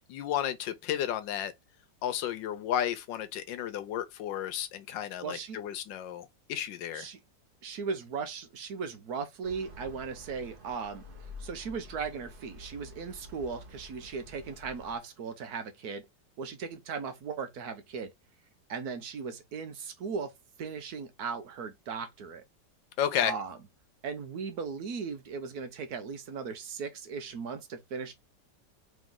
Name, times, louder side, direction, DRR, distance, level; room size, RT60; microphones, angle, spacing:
voice 1, 0.1-1.5 2.0-7.1 23.0-23.3, left 10 dB, 90° left, 1.4 m, -32 dB
voice 2, 5.2-5.6 6.9-7.2 7.6-11.0 11.4-16.0 16.4-18.1 18.7-20.3 20.6-22.4 23.2-23.6 24.0-28.1, right 5 dB, 65° right, 1.2 m, -37 dB
sound 1, 9.4-15.0, left 1 dB, 40° right, 0.9 m, -49 dB
3.5 x 3.1 x 3.6 m
omnidirectional pair, 2.0 m